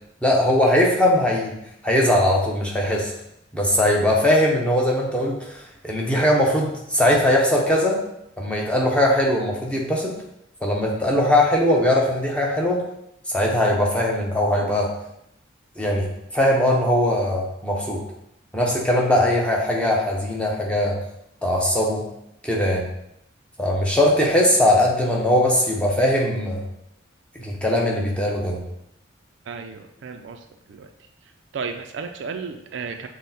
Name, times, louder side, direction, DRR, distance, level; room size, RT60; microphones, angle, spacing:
voice 1, 0.2-1.5 1.8-3.1 3.5-5.5 5.8-8.0 8.4-10.1 10.6-12.8 13.3-14.9 15.8-16.1 16.3-18.0 18.5-21.0 21.4-22.1 22.4-22.9 23.6-26.6 27.3-28.6, left 1 dB, 5° left, -2 dB, 0.7 m, -20 dB
voice 2, 29.5-30.4 30.7-30.9 31.5-33.1, right 5 dB, 60° right, 6 dB, 0.4 m, -33 dB
6.2 x 2.1 x 4.0 m, 0.80 s
head